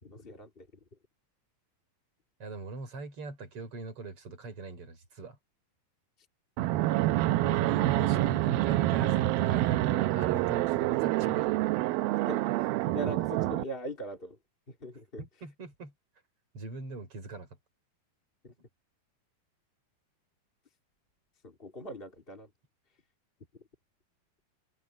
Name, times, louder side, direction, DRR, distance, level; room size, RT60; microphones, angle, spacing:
voice 1, 0.0-0.7 12.2-14.4 14.7-15.2 18.4-18.5 21.4-22.5 23.5-23.6, right 1 dB, 15° left, 2.3 m, -41 dB
voice 2, 2.4-5.4 7.4-11.6 15.2-15.9 16.5-17.5, right 3 dB, 35° right, 6.1 m, -41 dB
Fixed-wing aircraft airplane, 6.6-13.6, right 16 dB, 80° right, 2.4 m, -27 dB
omnidirectional pair, 4.4 m